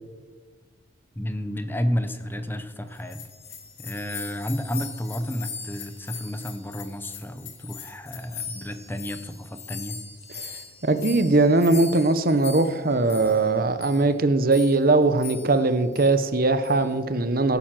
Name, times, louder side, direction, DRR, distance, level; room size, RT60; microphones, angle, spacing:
voice 1, 1.2-3.2 3.8-10.0, equal, 10° left, 10 dB, 0.8 m, -31 dB
Bell, 2.9-8.2, left 9 dB, 75° left, 2.1 m, -44 dB
sound 1, 3.0-7.3 7.6-13.5 13.8-14.0 14.5-14.8 15.2-15.6 15.9-16.1 16.6-16.9, left 5 dB, 35° left, 1.8 m, -40 dB
voice 2, 10.8-17.6, right 2 dB, 50° right, 11 dB, 0.9 m, -20 dB
16.5 x 9.1 x 7.6 m, 1.5 s
head